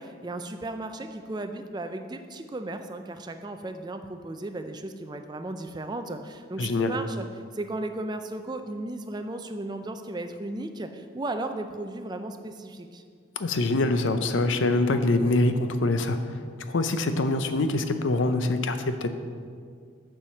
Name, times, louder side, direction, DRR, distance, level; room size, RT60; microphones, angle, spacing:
voice 1, 0.0-7.3 7.5-13.0, right 2 dB, 20° right, 7 dB, 0.4 m, -35 dB
voice 2, 6.6-7.0 13.4-16.2 16.7-19.1, left 2 dB, 75° left, 9 dB, 0.6 m, -24 dB
7.0 x 4.9 x 7.0 m, 2.1 s
head